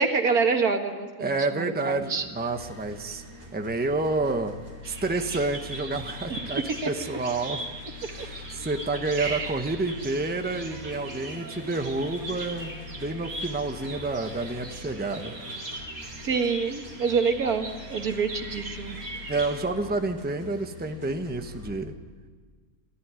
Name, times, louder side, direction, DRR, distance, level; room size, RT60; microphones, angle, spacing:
voice 1, 0.0-2.2 6.3-6.4 6.8-6.9 9.2-9.6 16.2-19.0, right 5 dB, 80° right, 5 dB, 2.2 m, -26 dB
voice 2, 1.2-3.2 3.5-4.6 4.8-7.6 8.1-15.3 19.3-21.9, right 3 dB, 5° right, 6 dB, 1.0 m, -29 dB
sound 1, 1.9-21.7, left 2 dB, 25° right, 5.2 m, -44 dB
Bird vocalization bird call bird song, 4.8-19.6, right 2 dB, 45° right, 2.7 m, -40 dB
28.5 x 13.5 x 9.5 m, 1.5 s
omnidirectional pair, 1.6 m